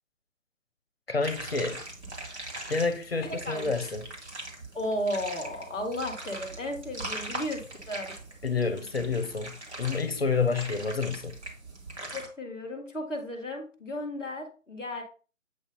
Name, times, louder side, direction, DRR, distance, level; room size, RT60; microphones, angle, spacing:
voice 1, 1.1-1.8 2.7-4.1 8.4-11.4, left 4 dB, 50° left, 0.9 m, -29 dB
sound 1, 1.2-12.3, right 2 dB, 55° right, 2.2 m, -41 dB
voice 2, 3.2-3.7 4.7-7.6 7.9-8.1 12.1-15.0, left 1 dB, 5° right, 0.9 m, -34 dB
8.1 x 2.7 x 5.4 m
figure-of-eight pair, 150°, 40 cm